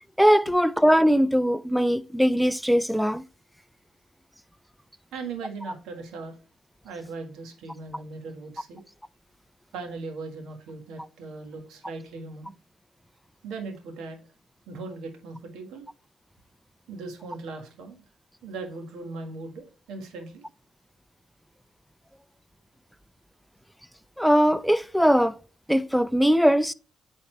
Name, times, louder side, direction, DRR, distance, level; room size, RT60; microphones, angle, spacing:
voice 1, 0.2-3.2 24.2-25.4 25.7-26.7, equal, ahead, 0.4 m, -20 dB
voice 2, 5.1-6.3 6.8-8.8 9.7-12.5 13.4-14.2 14.7-15.9 16.9-18.0 18.4-20.4, right 3 dB, 85° right, 1.6 m, -38 dB
8.9 x 4.2 x 3.3 m
cardioid pair, 90°, 0 cm